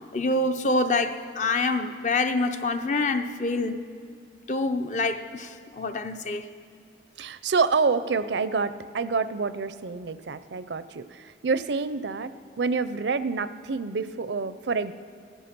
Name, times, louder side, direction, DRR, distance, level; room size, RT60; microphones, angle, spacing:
voice 1, 0.1-3.8 4.5-6.4, left 2 dB, 40° left, 8 dB, 0.7 m, -26 dB
voice 2, 7.2-14.9, right 4 dB, 70° right, 14 dB, 0.5 m, -27 dB
16.5 x 14.5 x 6.0 m, 2.3 s
head